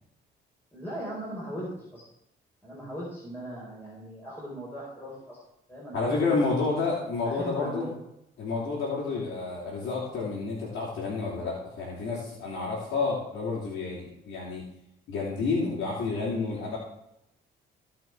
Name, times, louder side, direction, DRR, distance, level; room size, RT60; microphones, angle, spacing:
voice 1, 0.7-2.0 2.6-5.4 5.7-6.7 7.2-8.0, equal, 10° left, -6 dB, 4.3 m, -39 dB
voice 2, 5.9-7.9 8.4-14.6 15.1-16.8, left 3 dB, 75° left, -6 dB, 3.2 m, -30 dB
16.0 x 5.7 x 4.6 m, 0.85 s
cardioid pair, 90°, 20 cm